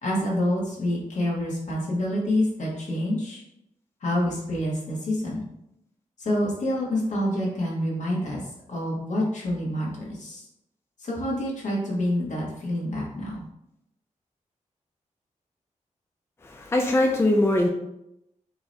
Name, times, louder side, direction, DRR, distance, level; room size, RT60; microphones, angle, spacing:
voice 1, 0.0-3.4 4.0-5.5 6.2-8.4 8.7-10.4 11.0-13.4, left 1 dB, 65° left, -4 dB, 1.4 m, -27 dB
voice 2, 16.4-17.7, left 1 dB, 20° left, 2 dB, 0.4 m, -21 dB
4.6 x 2.7 x 3.2 m, 0.82 s
wide cardioid pair, 135°, 13 cm